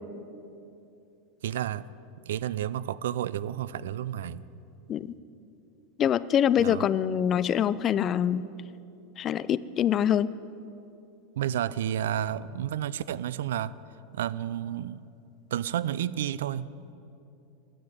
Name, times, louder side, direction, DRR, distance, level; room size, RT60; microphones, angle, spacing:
voice 1, 1.4-1.9 2.3-4.4 6.6-6.8 11.4-13.7 14.1-15.0 15.5-16.7, right 10 dB, 90° right, 18 dB, 0.4 m, -31 dB
voice 2, 6.0-8.5 9.2-10.3, left 9 dB, 30° left, 17 dB, 0.3 m, -25 dB
10.0 x 8.9 x 9.0 m, 2.7 s
supercardioid pair, 145°, 0 cm